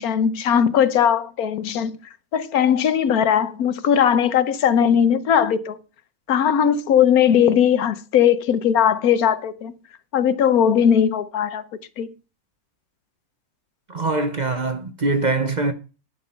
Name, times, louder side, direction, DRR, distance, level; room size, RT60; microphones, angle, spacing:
voice 1, 0.0-2.0 2.3-5.8 6.3-9.7 10.1-11.6 12.0-12.1, left 8 dB, 75° left, 1.3 m, -19 dB
voice 2, 13.9-15.7, right 3 dB, 35° right, 0.9 m, -23 dB
10.0 x 7.8 x 5.6 m
omnidirectional pair, 1.6 m